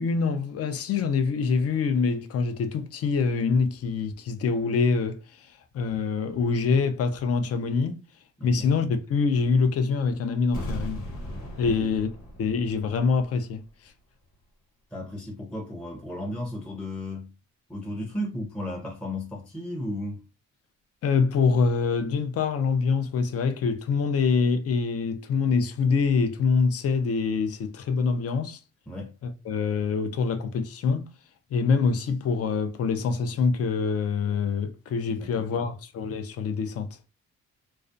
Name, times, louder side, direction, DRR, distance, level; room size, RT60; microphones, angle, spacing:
voice 1, 0.0-5.5 5.7-8.0 8.4-11.0 11.6-12.1 12.4-13.6 21.0-28.6 29.2-31.1 31.5-36.9, left 5 dB, 50° left, 0.5 m, -25 dB
sound 1, 10.5-13.4 13.7-13.8, equal, 75° left, 1.1 m, -37 dB
voice 2, 14.9-17.3 17.7-20.2 28.9-29.1 35.2-35.6, left 1 dB, 5° left, 0.6 m, -34 dB
2.3 x 2.1 x 2.5 m
cardioid pair, 90°, 30 cm